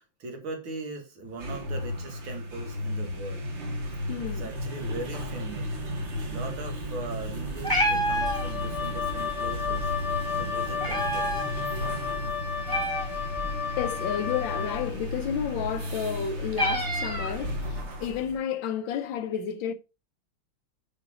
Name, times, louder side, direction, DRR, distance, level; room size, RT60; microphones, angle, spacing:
voice 1, 0.0-3.5 3.8-5.8 6.3-11.5, right 3 dB, 70° right, 2.5 m, -40 dB
sound 1, 1.2-18.4, equal, 35° right, 1.5 m, -34 dB
voice 2, 4.1-4.5 13.8-19.7, left 8 dB, 70° left, 1.4 m, -31 dB
Meow, 7.4-17.9, equal, 10° right, 1.6 m, -32 dB
Wind instrument woodwind instrument, 8.2-14.9, left 8 dB, 25° left, 0.8 m, -33 dB
5.9 x 5.5 x 4.8 m
omnidirectional pair, 2.3 m